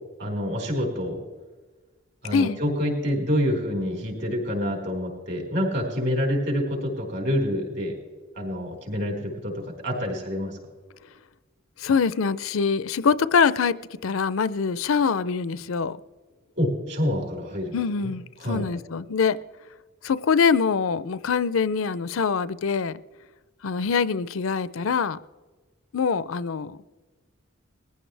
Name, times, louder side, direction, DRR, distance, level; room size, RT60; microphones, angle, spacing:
voice 1, 0.2-1.2 2.2-7.9 8.3-10.6 16.6-17.8 18.0-18.1 18.4-18.6, equal, 50° right, 4.7 m, -27 dB
voice 2, 11.8-16.0 17.7-19.4 20.0-23.0 23.6-25.2 25.9-26.8, left 5 dB, 75° left, 0.5 m, -24 dB
21.0 x 15.0 x 3.3 m
head